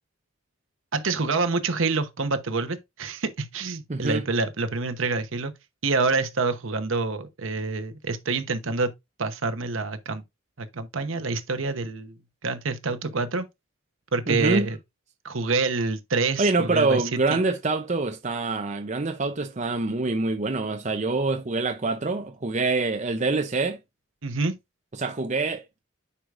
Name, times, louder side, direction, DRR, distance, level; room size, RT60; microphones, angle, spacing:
voice 1, 0.9-5.5 5.8-8.9 9.2-10.2 10.6-12.2 12.4-13.4 14.1-14.8 15.2-17.4 24.2-24.6, right 3 dB, 70° right, 1.0 m, -27 dB
voice 2, 3.9-4.2 14.3-14.7 16.4-23.8 25.0-25.6, right 3 dB, 35° right, 0.6 m, -25 dB
9.9 x 4.8 x 2.5 m
head